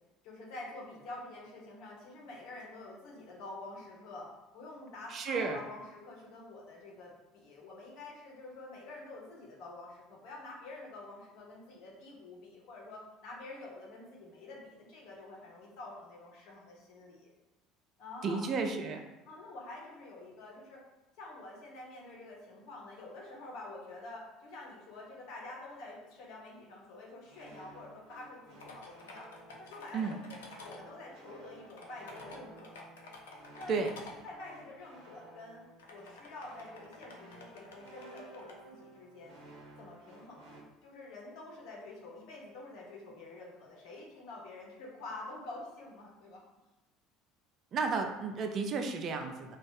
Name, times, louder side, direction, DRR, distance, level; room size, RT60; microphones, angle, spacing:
voice 1, 0.2-17.3 18.0-18.5 19.3-20.8 21.1-29.3 29.6-32.9 33.5-33.8 34.2-39.4 39.8-46.4, left 2 dB, 60° left, -2 dB, 1.0 m, -48 dB
voice 2, 5.1-5.6 18.2-19.0 29.9-30.1 33.7-33.9 47.7-49.6, right 4 dB, 45° right, 4 dB, 0.4 m, -32 dB
sound 1, 27.3-40.6, right 2 dB, 65° right, 1.0 m, -55 dB
sound 2, 28.6-30.8 31.6-34.2 35.0-35.1 35.8-38.5, left 3 dB, 80° left, 0.5 m, -50 dB
2.5 x 2.4 x 3.9 m, 1.1 s
hypercardioid pair, 65°, 0 cm